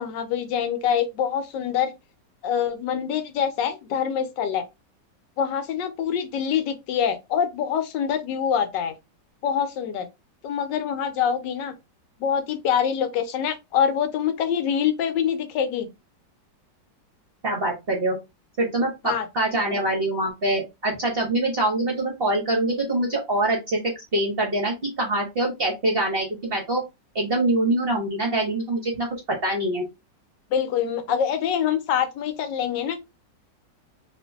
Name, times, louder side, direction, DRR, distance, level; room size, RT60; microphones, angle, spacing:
voice 1, 0.0-1.9 2.4-4.6 5.4-8.9 9.4-10.1 10.4-11.7 12.2-15.9 19.0-19.3 30.5-33.0, left 8 dB, 75° left, 1.2 m, -25 dB
voice 2, 17.4-18.2 18.6-26.8 27.1-29.8, right 1 dB, 45° right, 0.8 m, -24 dB
2.9 x 2.5 x 3.4 m
omnidirectional pair, 2.0 m